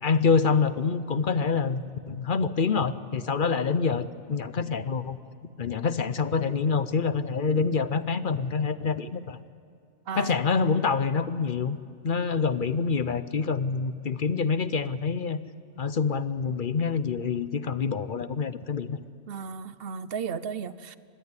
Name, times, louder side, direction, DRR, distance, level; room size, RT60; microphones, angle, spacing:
voice 1, 0.0-5.2 5.6-9.4 10.1-11.8 12.0-15.4 15.8-19.0, left 5 dB, 50° left, 14 dB, 0.8 m, -26 dB
voice 2, 19.3-21.0, right 6 dB, 55° right, 14 dB, 1.0 m, -34 dB
25.0 x 20.0 x 9.8 m, 2.2 s
omnidirectional pair, 1.2 m